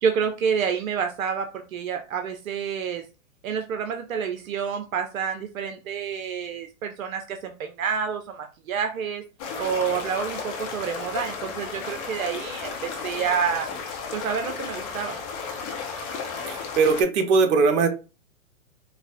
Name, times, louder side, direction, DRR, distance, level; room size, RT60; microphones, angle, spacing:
voice 1, 0.0-3.0 3.4-9.2 9.6-13.7 14.1-15.2, right 7 dB, 80° right, 6 dB, 0.6 m, -28 dB
sound 1, 9.4-17.0, left 5 dB, 25° left, 0.6 m, -34 dB
voice 2, 16.5-17.9, right 4 dB, 55° right, 5 dB, 0.9 m, -20 dB
4.1 x 2.0 x 2.5 m, 0.31 s
hypercardioid pair, 125°, 41 cm